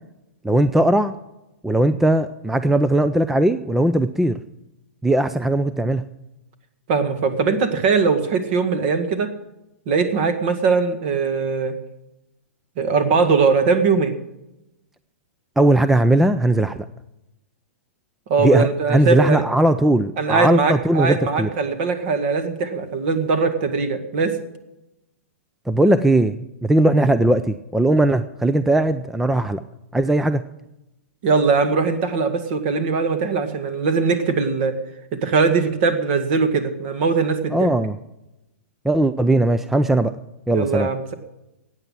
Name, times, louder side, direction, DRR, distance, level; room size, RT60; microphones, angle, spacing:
voice 1, 0.4-1.1 1.6-4.4 5.0-6.0 15.6-16.8 18.4-21.5 25.7-29.6 29.9-30.4 37.5-37.9 38.8-40.1 40.5-40.9, right 1 dB, 5° right, 12 dB, 0.4 m, -18 dB
voice 2, 6.9-9.3 9.9-11.7 12.8-14.2 18.3-19.4 20.2-24.4 31.2-34.7 35.1-37.7 40.5-41.1, right 4 dB, 45° right, 8 dB, 2.0 m, -20 dB
14.0 x 9.2 x 7.5 m, 0.91 s
hypercardioid pair, 145°, 8 cm